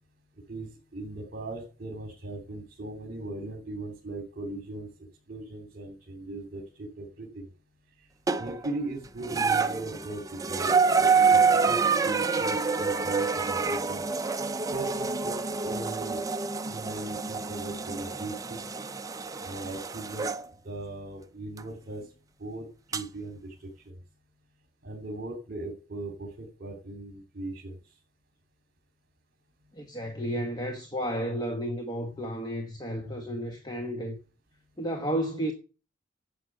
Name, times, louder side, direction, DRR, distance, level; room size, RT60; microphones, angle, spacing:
voice 1, 0.5-4.9 5.3-7.5 8.4-11.1 11.7-14.1 14.7-16.2 16.7-18.7 19.4-20.3 20.6-22.1 22.4-24.0 24.8-27.8, right 2 dB, 45° right, 3.1 m, -39 dB
sound 1, 8.3-8.7 9.2-20.4 21.6-21.7 22.9-23.0, right 5 dB, 15° right, 0.6 m, -27 dB
voice 2, 29.7-34.2 34.8-35.5, equal, 20° left, 1.2 m, -32 dB
11.5 x 8.0 x 7.8 m
head